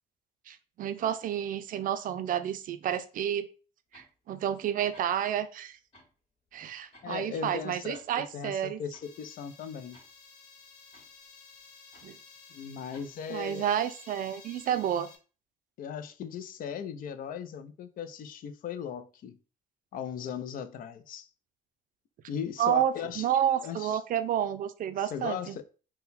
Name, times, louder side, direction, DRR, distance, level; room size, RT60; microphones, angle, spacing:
voice 1, 0.5-3.5 3.9-5.8 6.5-8.8 12.0-12.2 13.3-15.1 22.6-25.6, right 10 dB, 55° right, 0.4 m, -30 dB
sound 1, 3.9-4.1 4.6-4.7 4.9-5.1 5.9-6.2 6.5-7.2 7.5-8.1 8.4-8.5 8.9-9.1 9.9-10.2 10.9-11.1 11.9-12.1 12.9-13.1, equal, 40° left, 1.9 m, -57 dB
voice 2, 7.0-10.0 12.5-13.6 15.8-19.4 19.9-21.3 22.3-23.3 23.6-24.0 24.9-25.6, left 7 dB, 55° left, 0.5 m, -38 dB
sound 2, 9.0-15.2, left 5 dB, 70° left, 1.1 m, -53 dB
3.8 x 2.2 x 4.1 m
cardioid pair, 110°, 17 cm